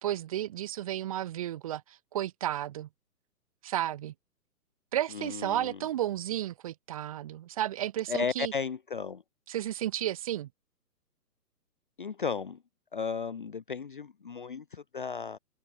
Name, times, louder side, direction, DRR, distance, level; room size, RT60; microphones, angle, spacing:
voice 1, 0.0-2.9 3.6-4.1 4.9-8.5 9.5-10.5, right 12 dB, 20° right, 2.5 m, -33 dB
voice 2, 5.1-5.8 8.1-9.2 12.0-12.6 12.9-15.4, left 5 dB, 30° left, 0.9 m, -34 dB
open air
hypercardioid pair, 180°, 48 cm